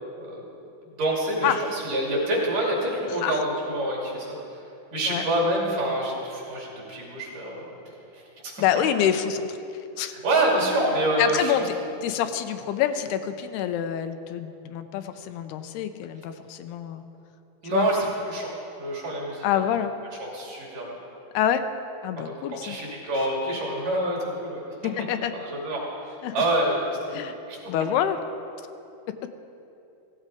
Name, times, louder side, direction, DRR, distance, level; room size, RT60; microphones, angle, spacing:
voice 1, 1.0-4.3 4.9-7.7 8.1-8.5 10.1-11.7 17.6-18.5 18.8-19.5 20.2-21.0 22.1-22.3 22.6-24.7 25.3-27.6, right 1 dB, 55° right, -3 dB, 4.2 m, -27 dB
voice 2, 8.6-9.7 10.0-10.1 11.2-11.6 12.0-17.0 17.6-17.9 19.4-19.9 21.3-21.7 22.0-22.8 24.8-25.3 26.2-26.3 27.1-27.4 27.7-28.2, left 10 dB, 85° left, 8 dB, 2.6 m, -26 dB
16.5 x 15.0 x 4.9 m, 2.7 s
omnidirectional pair, 4.6 m